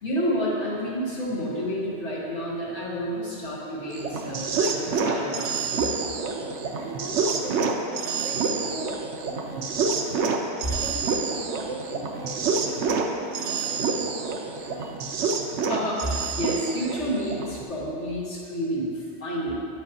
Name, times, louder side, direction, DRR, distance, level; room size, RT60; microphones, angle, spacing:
voice 1, 0.0-5.5 15.7-19.6, equal, 90° left, -6 dB, 1.9 m, -29 dB
sound 1, 3.9-17.6, right 4 dB, 85° right, 0.9 m, -28 dB
voice 2, 6.1-14.9, right 1 dB, 40° right, -1 dB, 0.7 m, -40 dB
8.2 x 7.5 x 2.8 m, 2.4 s
omnidirectional pair, 1.2 m